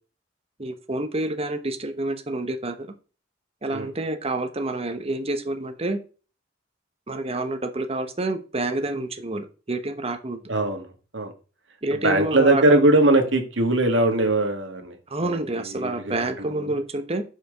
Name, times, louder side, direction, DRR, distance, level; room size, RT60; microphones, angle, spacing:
voice 1, 0.6-2.9 3.6-6.0 7.1-10.4 11.8-12.8 15.1-17.2, right 2 dB, 30° right, 7 dB, 1.1 m, -28 dB
voice 2, 10.5-11.3 11.9-16.8, right 2 dB, 75° right, 4 dB, 1.8 m, -21 dB
7.0 x 5.0 x 5.0 m, 0.35 s
head